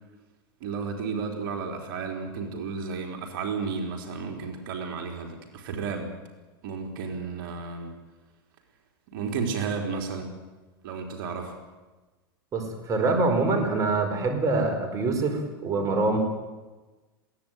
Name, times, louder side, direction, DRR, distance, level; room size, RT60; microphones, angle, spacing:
voice 1, 0.6-6.1 6.6-7.9 9.1-10.3 10.8-11.6, right 5 dB, 65° right, 2 dB, 4.2 m, -32 dB
voice 2, 12.5-16.2, right 3 dB, 30° right, 4 dB, 5.0 m, -25 dB
21.0 x 17.5 x 9.3 m, 1.2 s
hypercardioid pair, 120°, 12 cm